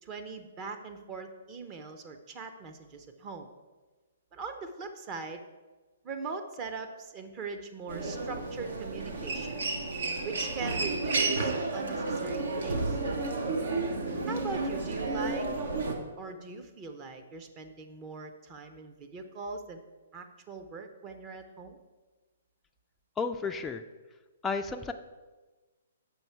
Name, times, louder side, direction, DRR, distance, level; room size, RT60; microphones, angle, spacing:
voice 1, 0.0-3.5 4.3-5.4 6.0-9.6 10.2-13.0 14.3-15.5 16.2-19.8 20.1-21.8, right 4 dB, 30° right, 5 dB, 0.7 m, -41 dB
Human voice, 7.9-15.9, right 3 dB, 75° right, 0.9 m, -31 dB
voice 2, 23.2-23.8 24.4-24.9, left 4 dB, 10° left, 5 dB, 0.3 m, -32 dB
7.0 x 5.4 x 4.5 m, 1.3 s
hypercardioid pair, 135°, 0 cm